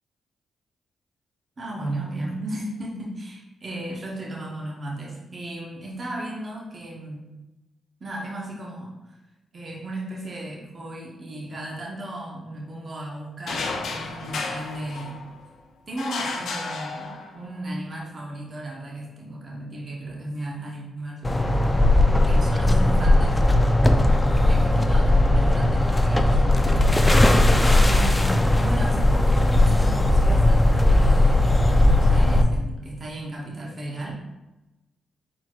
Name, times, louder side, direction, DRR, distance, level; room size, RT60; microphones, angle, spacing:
voice 1, 1.6-7.2 8.0-9.2 9.5-15.2 15.9-23.4 24.5-26.9 27.7-34.1, right 1 dB, 50° right, -3 dB, 1.0 m, -35 dB
sound 1, 13.5-15.5 16.0-17.5, left 3 dB, 75° left, 0.6 m, -32 dB
sound 2, 21.2-32.4, left 1 dB, 20° left, 0.5 m, -18 dB
4.4 x 4.0 x 2.4 m, 1.0 s
supercardioid pair, 50°, 0 cm